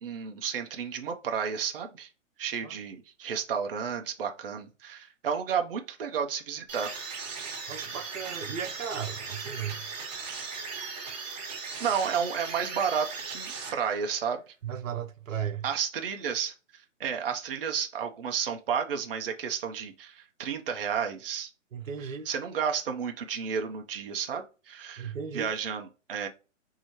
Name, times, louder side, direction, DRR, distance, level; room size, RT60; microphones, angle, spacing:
voice 1, 0.0-2.1 2.4-7.2 11.8-14.5 15.6-21.5 22.2-26.3, right 7 dB, 45° right, 0.6 m, -32 dB
sound 1, 6.7-14.2, right 5 dB, 30° right, 1.4 m, -38 dB
voice 2, 7.7-9.9 14.6-15.6 21.7-22.3 25.0-25.5, right 8 dB, 85° right, 0.8 m, -36 dB
4.9 x 2.7 x 2.9 m
hypercardioid pair, 170°, 39 cm